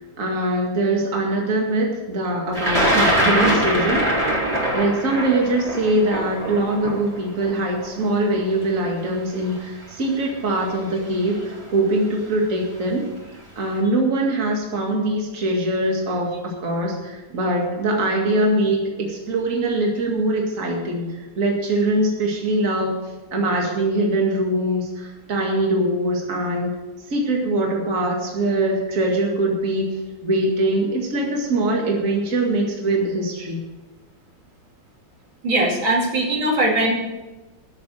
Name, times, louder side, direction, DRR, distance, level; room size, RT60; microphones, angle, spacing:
voice 1, 0.2-4.1 4.7-13.1 13.6-21.1 21.4-22.9 23.3-26.7 27.1-29.9 30.2-33.6, right 1 dB, 40° right, 0 dB, 2.4 m, -22 dB
Thunder, 2.5-8.6 9.5-9.6 10.7-11.0 11.3-11.8, right 1 dB, 15° right, 4.2 m, -22 dB
voice 2, 35.4-37.0, right 1 dB, 80° right, -2 dB, 3.3 m, -20 dB
12.5 x 7.2 x 7.7 m, 1.1 s
omnidirectional pair, 2.1 m